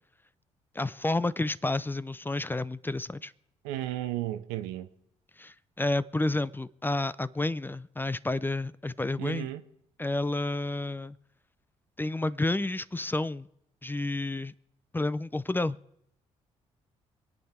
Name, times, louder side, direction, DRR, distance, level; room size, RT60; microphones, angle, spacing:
voice 1, 0.7-3.3 5.4-9.5 10.0-11.2 12.0-13.5 13.8-14.5 14.9-15.8, left 2 dB, 15° left, 0.6 m, -30 dB
voice 2, 3.6-4.9 9.2-9.6, right 14 dB, 80° right, 0.8 m, -33 dB
25.5 x 8.5 x 4.4 m
hypercardioid pair, 50°, 15 cm